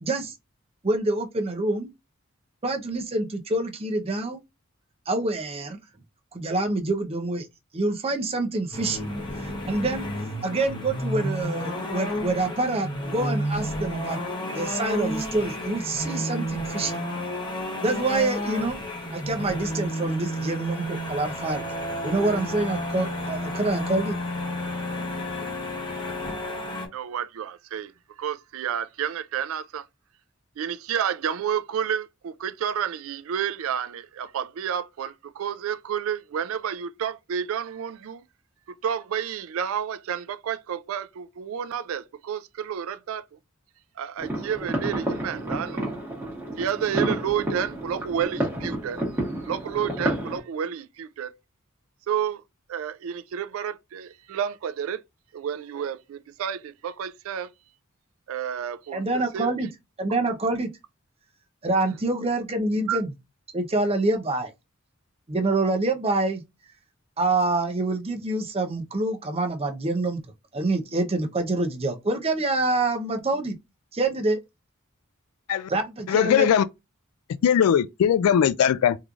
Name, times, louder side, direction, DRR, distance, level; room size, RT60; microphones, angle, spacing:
voice 1, 0.0-0.3 0.8-1.9 2.6-4.4 5.1-5.8 6.3-7.5 7.7-9.0 9.4-10.0 10.4-14.2 14.5-16.9 17.8-18.8 19.1-21.7 22.0-24.2 58.9-59.7 60.0-60.7 61.6-63.1 63.5-64.5 65.3-66.4 67.2-70.2 70.5-73.6 73.9-74.4 75.7-76.5, right 2 dB, 30° right, 0.6 m, -26 dB
sound 1, 8.7-26.9, equal, 20° left, 0.9 m, -31 dB
voice 2, 26.9-27.9 28.2-29.9 30.6-38.2 38.8-43.2 44.0-46.0 46.6-49.0 49.4-51.3 52.1-52.4 52.7-55.0 55.3-57.5 58.3-59.5 62.9-63.0, right 8 dB, 65° right, 0.3 m, -30 dB
sound 2, 44.2-50.4, right 1 dB, 10° right, 1.3 m, -30 dB
voice 3, 76.1-76.6 77.4-79.0, left 8 dB, 85° left, 0.3 m, -20 dB
3.7 x 3.0 x 2.4 m
head